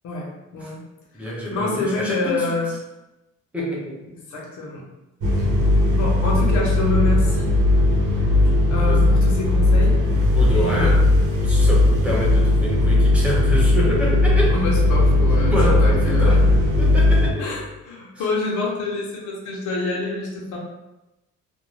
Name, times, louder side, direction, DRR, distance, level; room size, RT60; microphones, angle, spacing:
voice 1, 0.0-0.8 1.1-2.7 4.3-4.8 5.3-5.5 5.9-7.5 8.7-9.9 10.5-11.3 14.5-16.4 17.4-20.6, left 2 dB, 80° left, -2 dB, 0.8 m, -27 dB
voice 2, 1.1-2.5 3.5-4.0 8.9-9.0 10.3-11.0 11.4-14.5 15.4-16.4 16.8-17.5, equal, 5° right, -5 dB, 0.6 m, -26 dB
sound 1, 5.2-17.3, left 2 dB, 85° right, 0.9 m, -17 dB
2.5 x 2.2 x 3.1 m, 0.97 s
cardioid pair, 155°, 30 cm